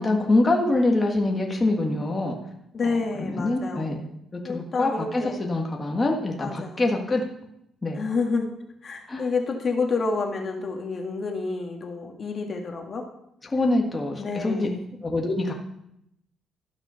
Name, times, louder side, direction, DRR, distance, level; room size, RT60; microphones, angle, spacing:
voice 1, 0.0-2.4 3.2-7.2 7.8-8.0 9.1-9.2 13.4-14.7 15.0-15.5, left 2 dB, 25° left, 1 dB, 1.6 m, -25 dB
voice 2, 2.7-3.9 4.4-5.4 6.4-6.8 7.9-8.5 8.8-13.0 14.2-14.8, left 4 dB, 45° left, 2 dB, 1.7 m, -29 dB
12.5 x 5.8 x 5.6 m, 0.78 s
cardioid pair, 90°, 0 cm